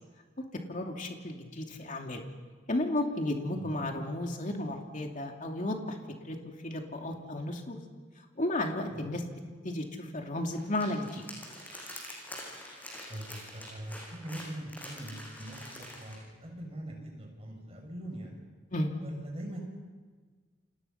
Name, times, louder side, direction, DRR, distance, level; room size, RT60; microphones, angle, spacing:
voice 1, 0.7-2.3 2.7-6.0 6.2-6.4 6.6-7.8 8.4-9.2 9.6-11.2 18.7-18.9, left 1 dB, 40° left, 2 dB, 2.8 m, -33 dB
sound 1, 10.5-16.2, left 1 dB, 10° left, 7.2 m, -45 dB
voice 2, 13.1-18.3 19.0-19.6, right 1 dB, 30° right, 0 dB, 7.2 m, -42 dB
29.5 x 27.0 x 5.9 m, 1.5 s
head